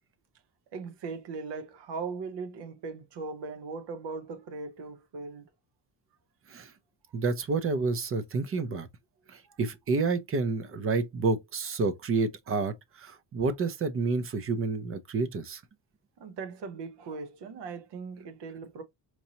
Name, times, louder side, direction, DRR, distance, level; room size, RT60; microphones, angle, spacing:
voice 1, 0.7-5.5 9.5-9.6 16.2-18.8, right 4 dB, 65° right, 0.9 m, -39 dB
voice 2, 7.1-8.9 9.3-15.6, right 4 dB, 30° right, 0.5 m, -29 dB
4.5 x 2.7 x 2.8 m
cardioid pair, 150°, 45 cm